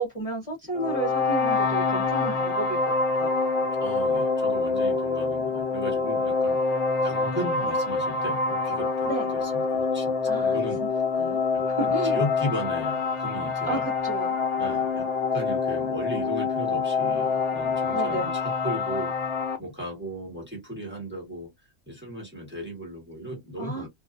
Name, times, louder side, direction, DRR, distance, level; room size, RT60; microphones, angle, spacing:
voice 1, 0.0-3.3 9.1-9.3 10.2-12.2 13.7-14.4 17.9-18.3 23.6-23.9, right 2 dB, 30° left, 0.9 m, -32 dB
sound 1, 0.7-19.6, left 4 dB, 60° left, 0.8 m, -26 dB
voice 2, 3.8-11.0 11.5-13.9 14.6-19.3 19.6-21.5 21.9-23.9, equal, 10° right, 1.2 m, -36 dB
2.4 x 2.3 x 2.4 m
omnidirectional pair, 1.3 m